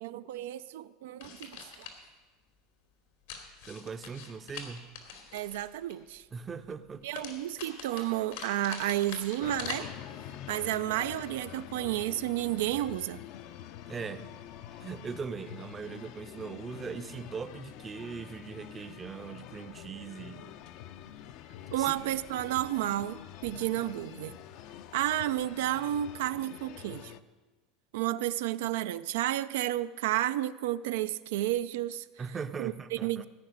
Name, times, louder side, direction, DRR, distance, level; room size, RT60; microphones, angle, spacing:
voice 1, 0.0-1.9 5.3-6.3 7.0-9.9 10.5-13.2 21.7-24.4 24.9-27.1 27.9-32.2 32.6-33.3, right 14 dB, 85° right, 0.4 m, -31 dB
sound 1, 1.2-2.0 3.3-5.9 7.1-9.8, left 7 dB, 85° left, 2.7 m, -44 dB
voice 2, 3.6-4.9 6.3-7.1 13.9-14.3 14.8-20.4 21.8-22.0 32.2-33.3, right 5 dB, 20° right, 0.6 m, -40 dB
sound 2, 9.4-27.2, left 10 dB, 55° left, 0.6 m, -46 dB
15.5 x 5.7 x 9.3 m
supercardioid pair, 145°, 0 cm